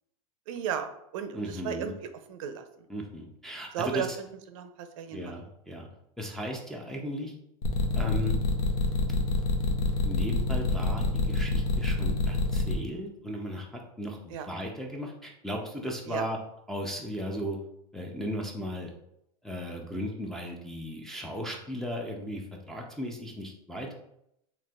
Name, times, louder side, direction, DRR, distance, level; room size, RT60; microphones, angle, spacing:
voice 1, 0.5-2.6 3.7-4.1 4.5-5.3 14.3-14.5 16.1-16.2, right 8 dB, 60° right, 8 dB, 0.5 m, -35 dB
voice 2, 1.3-1.9 2.9-4.2 5.1-5.9 6.2-7.3 7.9-8.4 10.0-16.4 16.7-17.6 17.9-18.9 19.4-23.9, equal, ahead, -2 dB, 0.4 m, -36 dB
sound 1, 7.6-12.7, left 3 dB, 80° left, 0.8 m, -26 dB
4.1 x 2.8 x 2.3 m, 0.78 s
supercardioid pair, 135°, 19 cm